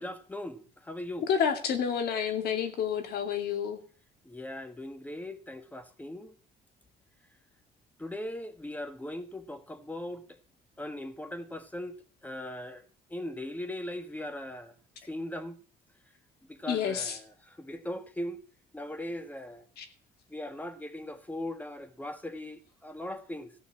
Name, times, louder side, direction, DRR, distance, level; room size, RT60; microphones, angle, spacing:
voice 1, 0.0-1.3 4.2-6.3 8.0-10.4 10.8-12.0 12.2-14.7 15.1-15.6 16.5-18.4 18.7-19.6 20.3-23.5, left 1 dB, 10° left, 1.6 m, -39 dB
voice 2, 1.3-3.8 16.7-17.2 19.8-19.9, left 7 dB, 70° left, 2.4 m, -29 dB
14.5 x 5.4 x 8.5 m
cardioid pair, 110°, 17 cm